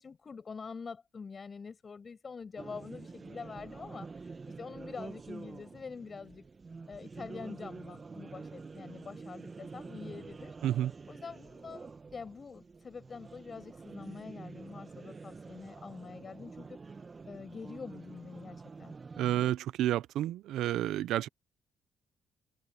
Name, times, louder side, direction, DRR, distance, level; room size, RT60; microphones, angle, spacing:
voice 1, 0.0-6.5 6.9-10.6 11.1-17.0 17.3-18.9, left 5 dB, 40° left, 6.5 m, -45 dB
sound 1, 2.6-19.5, right 4 dB, 35° right, 1.5 m, -47 dB
voice 2, 19.2-21.3, right 13 dB, 85° right, 0.6 m, -30 dB
cardioid pair, 90°, 0 cm